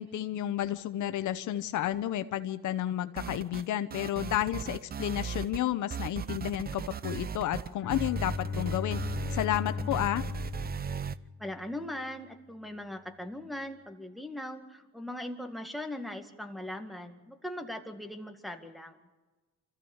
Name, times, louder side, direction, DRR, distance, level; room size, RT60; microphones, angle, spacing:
voice 1, 0.0-9.0 9.3-10.3, left 12 dB, 75° left, 11 dB, 0.9 m, -31 dB
sound 1, 3.2-3.7 3.9-5.6 5.9-11.2, right 7 dB, 30° right, 0.6 m, -37 dB
Bowed string instrument, 7.8-11.7, left 5 dB, 40° left, 1.9 m, -37 dB
voice 2, 11.4-19.0, left 1 dB, ahead, 4 dB, 2.0 m, -40 dB
25.5 x 14.5 x 7.2 m, 1.2 s
cardioid pair, 90°, 30 cm